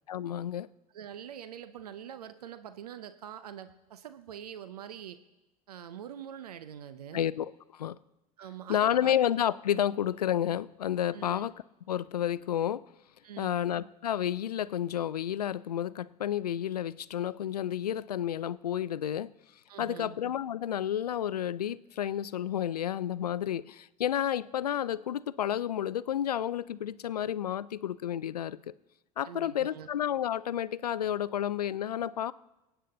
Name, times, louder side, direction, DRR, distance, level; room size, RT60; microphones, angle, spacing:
voice 1, 0.1-0.7 7.1-8.0 8.7-11.6 11.9-12.9 13.4-19.3 19.8-28.7 29.2-32.3, left 10 dB, 90° left, 19 dB, 0.4 m, -31 dB
voice 2, 0.9-5.2 5.7-7.3 8.4-9.1 11.1-11.4 13.2-13.6 19.7-20.2 29.2-29.9, right 9 dB, 80° right, 12 dB, 0.7 m, -44 dB
22.5 x 9.1 x 3.9 m, 0.98 s
hypercardioid pair, 80°, 19 cm